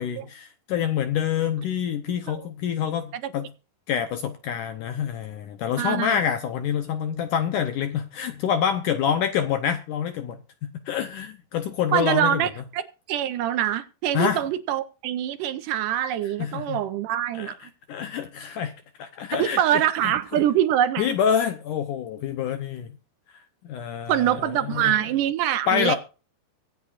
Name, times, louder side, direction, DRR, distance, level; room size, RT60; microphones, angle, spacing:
voice 1, 0.0-3.5 3.9-10.4 10.9-12.4 14.1-14.4 16.4-16.8 17.4-17.5 17.9-18.7 19.0-19.6 20.0-20.1 21.0-22.9 23.7-24.9 25.7-26.0, left 8 dB, 70° left, 2.3 m, -26 dB
voice 2, 5.8-6.2 11.9-17.7 19.3-21.1 24.1-26.0, right 11 dB, 75° right, 2.2 m, -24 dB
24.0 x 8.3 x 2.5 m
omnidirectional pair, 4.1 m